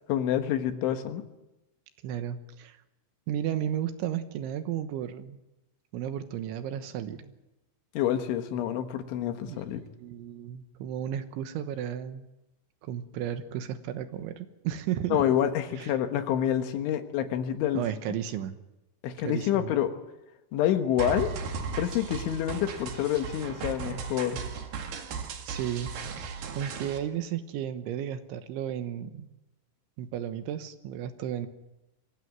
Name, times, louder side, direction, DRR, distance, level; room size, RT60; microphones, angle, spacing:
voice 1, 0.1-1.3 8.0-9.8 15.1-17.8 19.0-19.9 20.5-21.3 21.8-24.4, left 10 dB, 75° left, 7 dB, 3.7 m, -27 dB
voice 2, 2.0-2.8 3.3-5.4 5.9-7.3 9.5-9.7 10.0-12.3 12.8-15.2 15.8-15.9 17.8-18.6 19.2-19.7 25.5-25.9 26.2-29.3 30.0-31.5, right 10 dB, 80° right, 9 dB, 3.4 m, -33 dB
sound 1, 21.0-27.0, right 5 dB, 55° right, 3.2 m, -36 dB
23.5 x 16.0 x 9.4 m, 0.98 s
omnidirectional pair, 5.7 m